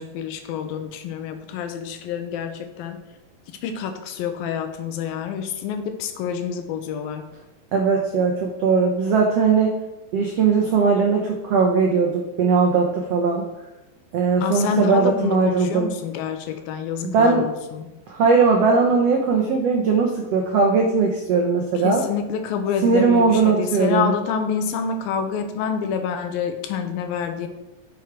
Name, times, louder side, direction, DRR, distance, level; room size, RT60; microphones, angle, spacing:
voice 1, 0.0-3.0 3.6-7.2 14.4-17.9 21.8-27.5, left 7 dB, 85° left, 7 dB, 2.6 m, -27 dB
voice 2, 7.7-9.7 10.1-13.4 14.1-15.9 17.0-17.5 18.1-22.0 22.8-24.1, right 5 dB, 80° right, 1 dB, 1.4 m, -19 dB
9.8 x 6.3 x 4.8 m, 1.0 s
omnidirectional pair, 4.2 m